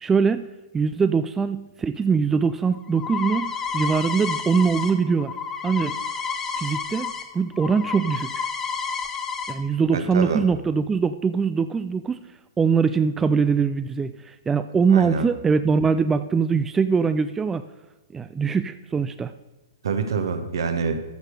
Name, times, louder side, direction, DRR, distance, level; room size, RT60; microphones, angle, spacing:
voice 1, 0.0-5.3 5.6-6.0 6.6-8.4 9.5-12.2 12.6-17.6 18.1-19.3, right 5 dB, 10° right, 11 dB, 0.3 m, -22 dB
sound 1, 2.4-7.2 7.5-9.5, left 5 dB, 20° left, 1.1 m, -30 dB
voice 2, 9.9-10.4 14.9-15.2 19.8-21.0, right 5 dB, 65° right, 8 dB, 1.3 m, -26 dB
13.0 x 6.5 x 4.8 m, 1.1 s
figure-of-eight pair, 115°, 2 cm